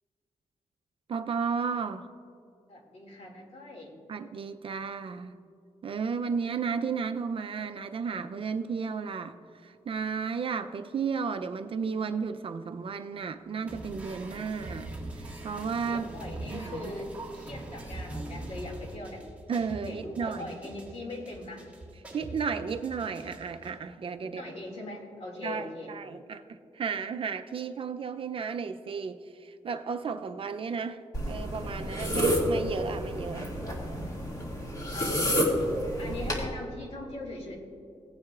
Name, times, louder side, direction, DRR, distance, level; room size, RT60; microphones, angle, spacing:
voice 1, 1.1-2.1 4.1-5.4 5.8-14.9 15.2-16.1 16.5-16.8 19.5-20.6 22.1-24.5 25.4-34.2, right 5 dB, 50° right, 8 dB, 0.5 m, -34 dB
voice 2, 2.7-3.9 15.9-19.2 19.9-21.6 24.2-25.9 34.9-35.4 36.0-37.6, left 2 dB, 60° left, 0 dB, 2.2 m, -40 dB
sound 1, 13.7-23.7, right 1 dB, 10° right, 1.6 m, -42 dB
sound 2, 31.1-36.4, equal, 30° left, 2.1 m, -29 dB
17.5 x 9.6 x 2.4 m, 2.5 s
wide cardioid pair, 140°, 12 cm